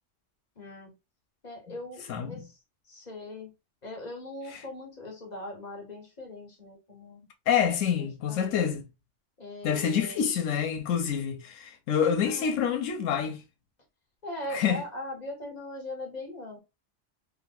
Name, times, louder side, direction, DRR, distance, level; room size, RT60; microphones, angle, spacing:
voice 1, 0.6-0.9 1.4-2.6 2.9-3.5 3.8-7.3 8.0-8.7 9.4-10.2 12.3-12.6 14.2-16.6, left 1 dB, 35° left, 1.1 m, -40 dB
voice 2, 2.1-2.4 4.5-4.6 7.5-8.9 9.6-13.4 14.5-14.8, left 8 dB, 90° left, 0.9 m, -27 dB
3.1 x 2.4 x 2.5 m
omnidirectional pair, 1.3 m